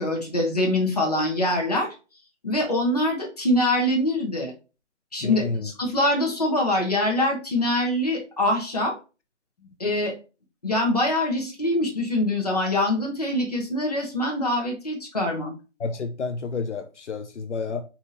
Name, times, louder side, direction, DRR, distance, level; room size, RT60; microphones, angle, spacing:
voice 1, 0.0-1.9 2.4-4.5 5.1-8.9 9.8-10.1 10.6-15.5, left 1 dB, 35° left, 1.0 m, -24 dB
voice 2, 5.2-5.7 15.8-17.8, left 4 dB, 75° left, 0.6 m, -30 dB
4.2 x 2.8 x 3.8 m
figure-of-eight pair, 180°, 36 cm